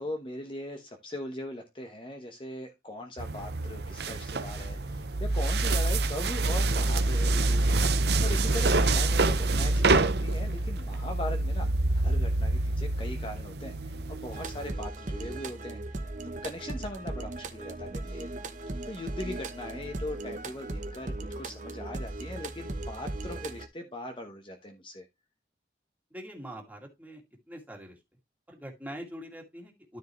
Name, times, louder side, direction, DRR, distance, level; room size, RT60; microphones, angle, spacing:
voice 1, 0.0-7.6 8.2-11.7 11.9-13.7 14.1-16.1 16.4-18.3 18.9-25.0, left 1 dB, 30° left, 5 dB, 1.0 m, -40 dB
sound 1, 3.2-14.7, right 2 dB, 65° right, 0.8 m, -26 dB
sound 2, 14.3-23.7, right 2 dB, 45° right, 1.0 m, -37 dB
voice 2, 26.1-27.2 27.5-28.0 28.5-30.0, equal, 10° right, 1 dB, 2.3 m, -43 dB
13.0 x 4.7 x 3.1 m, 0.22 s
head